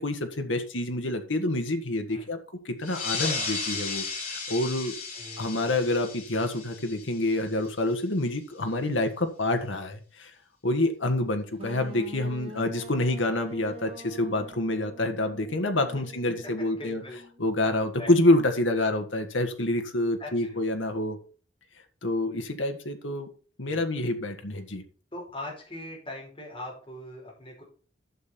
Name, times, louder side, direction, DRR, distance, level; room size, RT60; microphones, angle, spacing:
voice 1, 0.0-2.4 2.7-4.9 5.4-10.3 10.6-17.0 17.4-21.2 22.0-23.3 23.6-24.8, left 1 dB, 85° left, 6 dB, 1.7 m, -27 dB
sound 1, 2.8-7.9, left 4 dB, 45° left, 3.8 m, -35 dB
voice 2, 5.1-5.9 15.9-16.0 16.4-17.2 18.0-18.1 20.2-20.6 23.6-24.1 25.1-27.6, left 1 dB, 30° left, -1 dB, 5.2 m, -41 dB
sound 2, 11.6-17.5, right 1 dB, 30° right, 1.5 m, -45 dB
11.0 x 6.9 x 4.4 m, 0.38 s
head